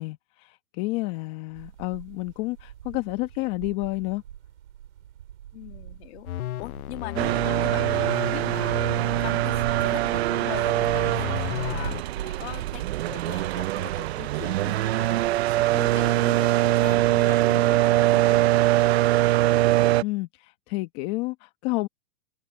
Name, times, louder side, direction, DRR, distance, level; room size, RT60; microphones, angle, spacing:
voice 1, 0.0-4.2 20.0-21.9, left 22 dB, 30° left, 1.1 m, -30 dB
sound 1, 1.5-14.0, right 11 dB, 75° right, 6.1 m, -41 dB
voice 2, 5.5-6.3 6.6-8.8 9.2-11.3 11.6-15.2 15.4-18.4, left 19 dB, 45° left, 2.3 m, -41 dB
sound 2, 6.2-12.0, left 14 dB, 85° left, 0.6 m, -35 dB
sound 3, 7.2-20.0, right 16 dB, 50° right, 0.5 m, -23 dB
hypercardioid pair, 155°, 42 cm